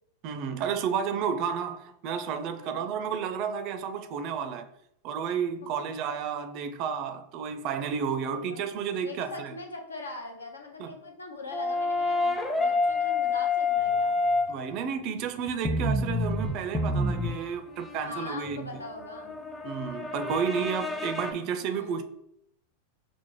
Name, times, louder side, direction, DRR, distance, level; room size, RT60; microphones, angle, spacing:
voice 1, 0.2-4.7 5.0-9.5 10.8-11.0 14.5-18.7 19.6-22.0, right 7 dB, 45° right, 0.4 m, -31 dB
voice 2, 2.6-2.9 5.6-5.9 8.2-8.6 9.0-14.2 17.2-17.4 18.0-19.4 21.6-22.0, left 2 dB, 85° left, 0.6 m, -42 dB
sound 1, 11.5-14.7 15.5-21.3, left 3 dB, 15° left, 0.5 m, -28 dB
5.9 x 2.0 x 3.0 m
hypercardioid pair, 95°, 0 cm